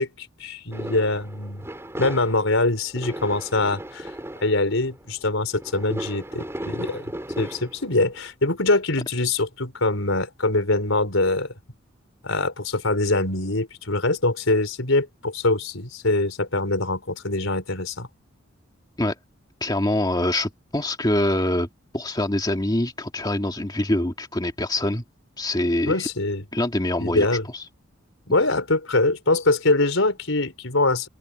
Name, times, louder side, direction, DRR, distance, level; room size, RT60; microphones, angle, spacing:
voice 1, 0.0-1.6 2.0-4.1 4.4-7.0 7.4-11.5 12.2-18.1 25.9-26.4 27.0-27.4 28.3-31.1, left 2 dB, 85° left, 4.3 m, -23 dB
sound 1, 0.7-8.3, right 1 dB, 15° right, 5.3 m, -36 dB
voice 2, 19.6-21.7 21.9-25.0 25.4-26.1 26.5-27.3 27.5-27.6, left 1 dB, 20° left, 2.1 m, -24 dB
open air
head